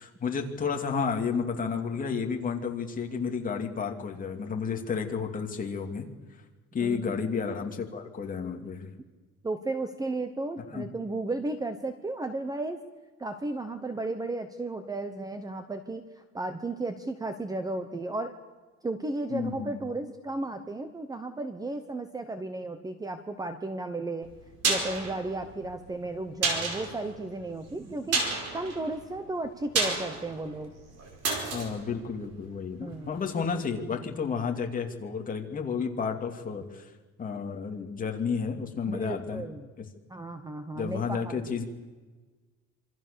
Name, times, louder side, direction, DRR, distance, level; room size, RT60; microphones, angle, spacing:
voice 1, 0.0-6.1 6.7-8.9 10.6-10.9 19.3-19.8 31.5-36.9 37.2-39.4 39.8-39.9 40.7-41.6, left 6 dB, 25° left, 3 dB, 2.7 m, -31 dB
voice 2, 6.8-7.2 9.4-12.8 13.2-18.3 18.8-24.3 24.6-28.2 28.5-30.7 32.8-33.3 38.9-39.7 40.1-41.4, right 2 dB, 10° right, 9 dB, 1.0 m, -34 dB
sound 1, 24.2-33.1 33.4-33.5, right 3 dB, 55° right, 5.2 m, -32 dB
26.5 x 25.0 x 6.9 m, 1.3 s
cardioid pair, 165°, 31 cm